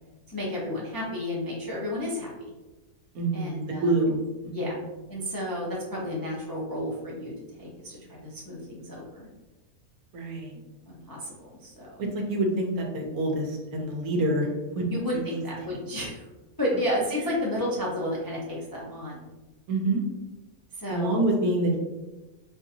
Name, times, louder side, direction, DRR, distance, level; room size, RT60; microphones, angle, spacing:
voice 1, 0.3-2.3 3.3-3.9 4.5-4.7 5.1-7.3 7.6-9.3 10.9-12.0 14.9-16.2 16.6-19.3 20.7-21.2, left 1 dB, 30° left, -5 dB, 0.4 m, -32 dB
voice 2, 3.1-4.8 10.1-10.5 12.0-14.5 14.7-14.9 15.1-15.4 19.7-20.0 20.9-21.8, right 2 dB, 75° right, 0 dB, 1.2 m, -27 dB
4.4 x 2.6 x 2.7 m, 1.1 s
omnidirectional pair, 1.6 m